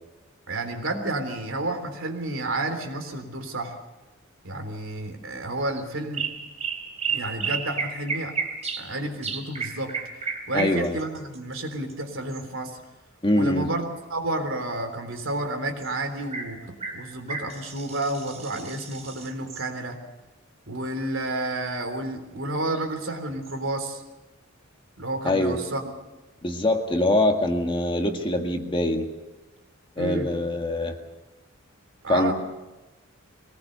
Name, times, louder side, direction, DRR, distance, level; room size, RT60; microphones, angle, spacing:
voice 1, 0.5-3.7 4.4-6.3 7.1-8.3 8.8-9.9 10.5-12.8 13.3-20.0 20.7-24.0 25.0-25.8 30.0-30.3 32.0-32.3, right 2 dB, 65° right, 5 dB, 3.6 m, -30 dB
sound 1, 5.6-5.8 6.1-8.9 9.2-12.4 15.8-15.9 16.3-16.5 16.8-19.7 22.7-22.8 23.4-23.6, right 5 dB, 35° right, 3.3 m, -32 dB
voice 2, 10.5-11.0 13.2-13.7 25.2-25.6 26.4-29.1 30.0-31.0 32.1-32.3, left 1 dB, 25° left, 4 dB, 1.9 m, -23 dB
22.5 x 19.0 x 6.8 m, 1.1 s
head